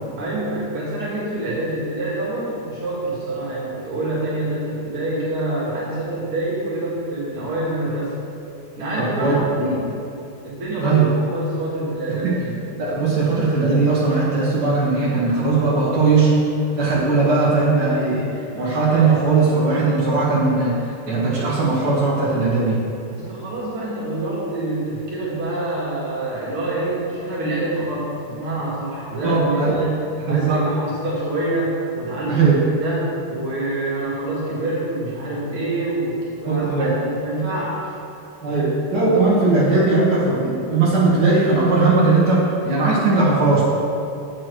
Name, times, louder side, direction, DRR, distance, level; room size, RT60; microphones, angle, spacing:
voice 1, 0.2-8.1 8.8-9.9 10.4-12.6 23.1-30.0 30.2-32.5 32.8-37.9 38.5-38.6, right 2 dB, 70° right, -7 dB, 3.0 m, -26 dB
voice 2, 12.8-16.3 16.7-18.3 18.5-20.7 21.1-22.8 29.2-29.7 30.3-30.6 32.3-32.6 36.4-36.9 38.4-43.6, right 3 dB, 50° right, -8 dB, 2.3 m, -18 dB
8.5 x 7.3 x 4.6 m, 2.7 s
omnidirectional pair, 2.4 m